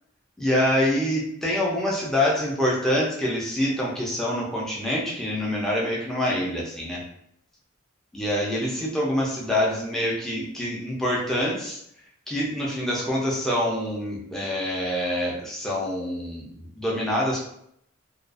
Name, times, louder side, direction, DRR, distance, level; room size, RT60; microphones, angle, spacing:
voice 1, 0.4-7.0 8.1-11.8 12.3-17.5, left 1 dB, ahead, -5 dB, 0.4 m, -26 dB
2.4 x 2.2 x 2.4 m, 0.72 s
head